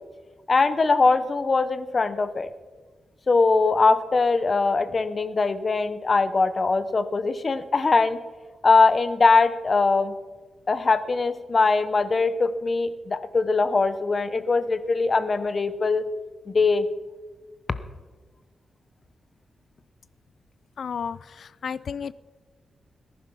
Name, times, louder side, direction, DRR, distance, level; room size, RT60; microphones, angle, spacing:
voice 1, 0.5-2.5 3.3-8.2 8.6-10.1 10.7-16.0 16.5-16.9, left 4 dB, 35° left, 13 dB, 0.8 m, -21 dB
voice 2, 20.8-22.1, left 6 dB, 65° left, 18 dB, 0.4 m, -32 dB
19.0 x 11.0 x 5.6 m, 1.4 s
wide cardioid pair, 145°, 0 cm